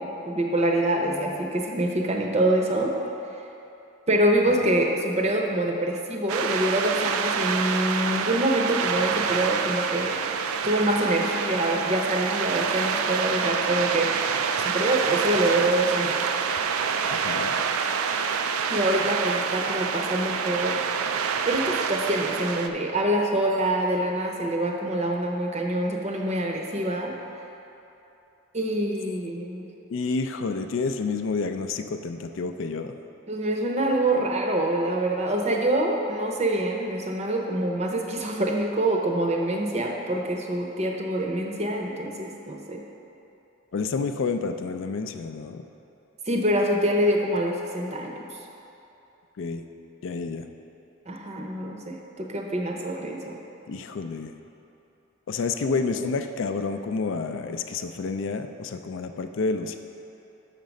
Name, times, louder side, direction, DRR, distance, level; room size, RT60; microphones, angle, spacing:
voice 1, 0.0-2.9 4.1-10.2 10.6-14.3 14.6-16.2 18.7-20.8 21.5-27.1 28.5-29.7 33.3-42.8 46.3-48.3 51.1-53.4, right 1 dB, 30° right, 1 dB, 0.6 m, -25 dB
sound 1, 6.3-22.7, right 6 dB, 85° right, 0.4 m, -27 dB
voice 2, 17.1-17.6 29.9-32.9 43.7-45.6 49.4-49.6 50.0-50.5 53.7-54.3 55.3-59.8, left 4 dB, 60° left, 7 dB, 0.4 m, -29 dB
6.5 x 5.9 x 5.2 m, 2.9 s
head